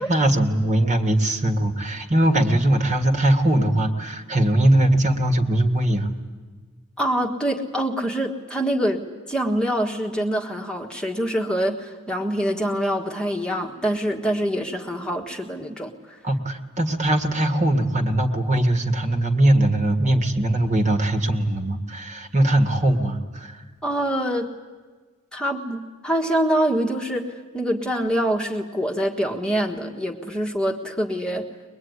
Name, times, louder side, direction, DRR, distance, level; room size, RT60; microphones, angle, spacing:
voice 1, 0.0-6.1 16.2-23.6, right 1 dB, 35° right, 6 dB, 1.9 m, -21 dB
voice 2, 7.0-16.2 23.8-24.5 25.3-31.5, right 1 dB, 5° left, 0 dB, 1.6 m, -25 dB
22.5 x 22.0 x 9.6 m, 1.4 s
head